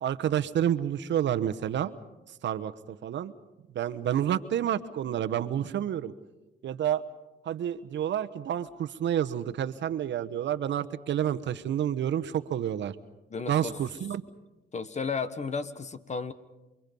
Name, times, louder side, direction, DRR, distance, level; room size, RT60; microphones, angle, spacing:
voice 1, 0.0-2.0 2.4-2.7 3.0-3.3 3.7-6.1 6.6-7.0 7.4-12.9 13.4-14.2, right 10 dB, 65° right, 11 dB, 1.1 m, -29 dB
voice 2, 13.3-13.7 14.7-16.3, left 5 dB, 35° left, 12 dB, 1.4 m, -33 dB
28.5 x 23.5 x 5.5 m, 1.0 s
cardioid pair, 90°, 20 cm